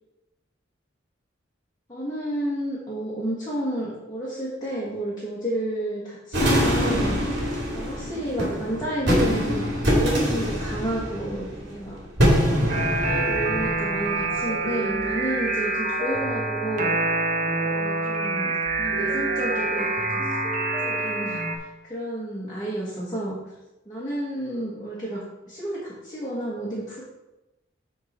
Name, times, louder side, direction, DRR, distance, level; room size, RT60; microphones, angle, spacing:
voice 1, 1.9-7.2 7.7-12.0 12.6-16.9 17.6-18.5 18.8-20.4 20.8-23.4 23.8-27.0, right 1 dB, 20° left, -8 dB, 1.6 m, -31 dB
sound 1, 6.3-14.6, equal, 60° right, 2.6 m, -24 dB
sound 2, 12.7-21.6, right 3 dB, 40° right, 1.1 m, -26 dB
11.0 x 3.9 x 4.3 m, 0.99 s
head